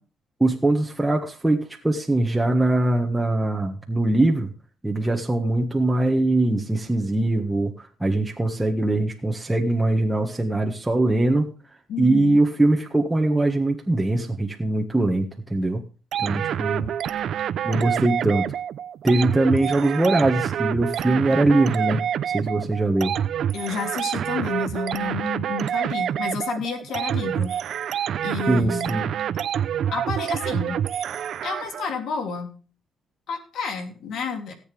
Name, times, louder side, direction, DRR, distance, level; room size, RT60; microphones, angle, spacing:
voice 1, 0.4-4.5 4.8-11.5 12.0-15.8 16.2-16.9 17.6-18.5 19.0-22.0 22.3-23.1 28.5-29.1, right 2 dB, 10° right, 0 dB, 1.7 m, -22 dB
voice 2, 11.9-12.4 23.5-27.5 28.2-29.0 29.9-30.8 31.4-32.5 33.3-34.5, left 5 dB, 75° left, 6 dB, 3.1 m, -30 dB
sound 1, 16.1-31.9, right 9 dB, 65° right, 0.7 m, -27 dB
18.0 x 8.2 x 3.4 m, 0.35 s
cardioid pair, 90°, 0 cm